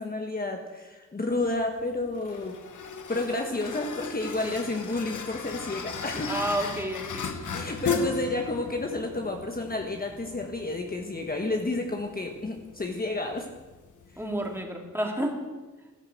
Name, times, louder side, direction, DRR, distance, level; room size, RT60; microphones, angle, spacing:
voice 1, 0.0-2.6 3.1-6.3 7.5-13.4, left 2 dB, 30° left, 2 dB, 1.5 m, -31 dB
sound 1, 1.3-14.6, left 5 dB, 85° left, 1.4 m, -37 dB
voice 2, 6.3-7.3 7.9-8.1 14.2-15.4, right 1 dB, 10° right, 2 dB, 2.7 m, -31 dB
13.5 x 13.5 x 7.9 m, 1.2 s
wide cardioid pair, 125°, 30 cm